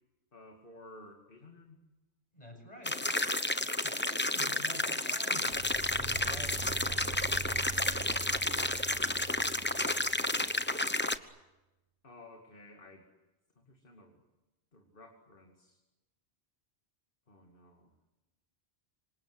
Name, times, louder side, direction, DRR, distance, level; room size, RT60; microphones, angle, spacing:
voice 1, 0.3-1.8 12.0-13.1 13.6-14.2 14.7-15.8 17.3-17.9, left 2 dB, 55° left, 3 dB, 2.7 m, -54 dB
voice 2, 2.3-3.0 3.8-7.8, equal, 35° left, 3 dB, 7.4 m, -49 dB
sound 1, 2.8-11.2, left 1 dB, 10° left, 0.9 m, -31 dB
sound 2, 5.4-10.7, right 6 dB, 35° right, 1.6 m, -44 dB
27.5 x 25.0 x 8.0 m, 1.0 s
omnidirectional pair, 1.1 m